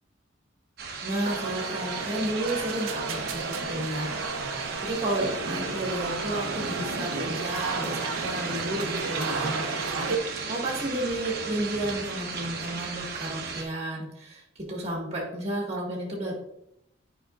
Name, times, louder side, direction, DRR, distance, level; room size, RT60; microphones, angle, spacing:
sound 1, 0.8-13.6, right 4 dB, 50° right, 1.0 m, -35 dB
voice 1, 1.0-3.4 3.7-4.1 4.8-16.3, right 1 dB, 30° right, -1 dB, 1.7 m, -32 dB
sound 2, 1.2-10.2, right 4 dB, 90° right, 0.7 m, -33 dB
8.9 x 5.2 x 2.5 m, 0.79 s
head